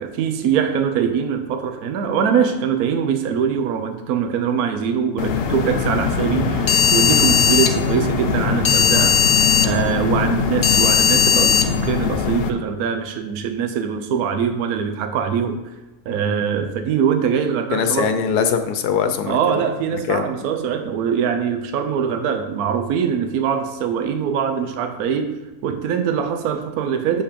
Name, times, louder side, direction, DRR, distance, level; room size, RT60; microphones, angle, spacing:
voice 1, 0.0-9.2 9.6-15.6 16.1-18.1 19.3-25.4 25.6-27.2, right 7 dB, 75° right, 6 dB, 1.1 m, -22 dB
sound 1, 5.2-12.5, left 6 dB, 60° left, 0.6 m, -18 dB
voice 2, 16.1-16.5 17.7-19.4 19.9-20.3, left 7 dB, 90° left, 8 dB, 1.3 m, -22 dB
6.9 x 5.2 x 5.1 m, 1.1 s
omnidirectional pair, 1.6 m